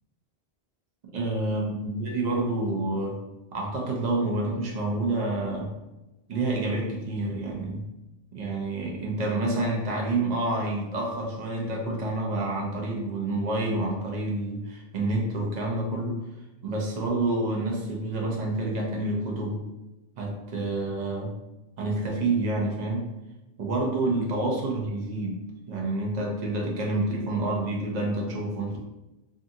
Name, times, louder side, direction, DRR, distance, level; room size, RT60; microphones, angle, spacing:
voice 1, 1.1-3.2 3.5-5.7 6.3-7.9 8.3-16.2 16.6-19.6 20.2-21.3 21.8-23.1 23.6-25.4 25.7-28.8, right 2 dB, 50° right, -1 dB, 0.7 m, -28 dB
2.6 x 2.4 x 2.6 m, 1.0 s
omnidirectional pair, 1.1 m